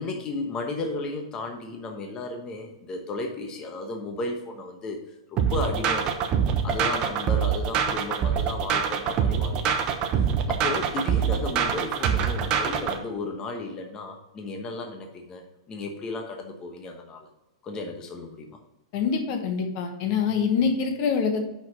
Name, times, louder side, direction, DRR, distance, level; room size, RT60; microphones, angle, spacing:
voice 1, 0.0-5.0 5.3-6.3 6.6-17.3 17.6-18.6, left 3 dB, 25° left, 3 dB, 1.1 m, -34 dB
sound 1, 5.4-13.0, right 7 dB, 35° right, 1.0 m, -25 dB
voice 2, 18.9-21.5, left 6 dB, 50° left, 4 dB, 1.2 m, -25 dB
6.0 x 5.7 x 6.3 m, 0.94 s
hypercardioid pair, 135°, 3 cm